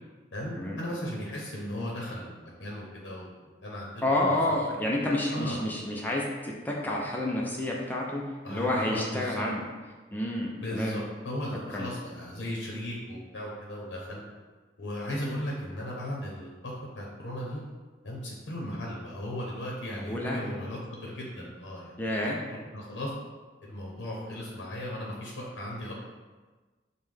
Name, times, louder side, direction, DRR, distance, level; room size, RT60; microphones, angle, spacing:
voice 1, 0.3-3.3 3.6-3.9 5.3-5.6 8.4-9.4 10.6-14.2 14.8-17.6 18.0-23.1 23.6-25.9, left 1 dB, 80° left, -3 dB, 0.7 m, -36 dB
voice 2, 4.0-9.6 10.1-11.0 11.7-11.9 20.0-20.4 22.0-22.4, left 1 dB, 10° left, -3 dB, 0.4 m, -29 dB
5.4 x 2.2 x 3.2 m, 1.3 s
head